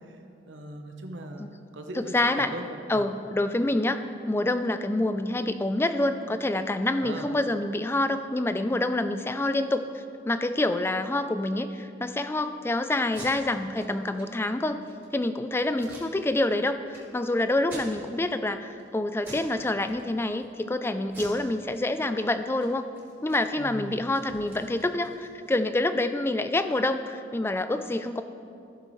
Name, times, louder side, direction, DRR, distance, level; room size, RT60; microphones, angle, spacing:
voice 1, 0.5-3.1 7.0-7.3 23.6-24.1, right 1 dB, 75° right, 5 dB, 0.8 m, -39 dB
voice 2, 1.9-2.5 2.9-4.0 4.3-14.8 15.1-22.9 23.2-28.2, left 2 dB, 15° left, 10 dB, 0.3 m, -27 dB
Packing tape duct tape, 13.0-13.3 13.7-13.9 14.1-14.2 14.7-15.1 15.7-16.5 16.9-17.0 17.6-18.3 18.7-18.9 19.2-19.5 19.8-20.4 21.1-22.2 22.5-22.7 22.9-25.6, right 2 dB, 15° right, 2.4 m, -46 dB
15.5 x 6.7 x 3.1 m, 2.6 s
head